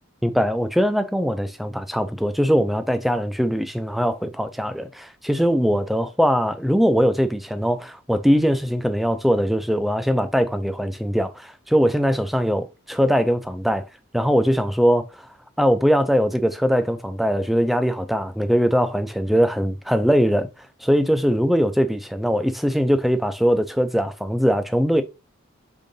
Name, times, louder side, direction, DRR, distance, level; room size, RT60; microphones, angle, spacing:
voice 1, 0.2-13.9 14.1-15.3 15.6-20.5 20.8-25.0, equal, ahead, 0.3 m, -21 dB
5.2 x 3.7 x 2.6 m
head